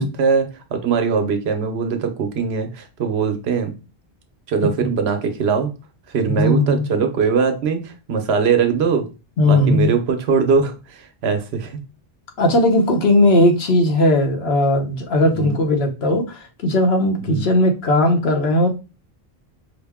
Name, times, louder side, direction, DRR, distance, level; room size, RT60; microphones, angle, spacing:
voice 1, 0.0-3.7 4.5-5.7 6.1-9.1 9.4-11.8 15.3-15.5 17.2-17.4, right 5 dB, 80° right, 6 dB, 1.0 m, -21 dB
voice 2, 6.4-6.9 9.4-9.9 12.4-18.7, left 1 dB, 75° left, 3 dB, 1.1 m, -17 dB
5.0 x 2.1 x 3.5 m, 0.30 s
omnidirectional pair, 1.1 m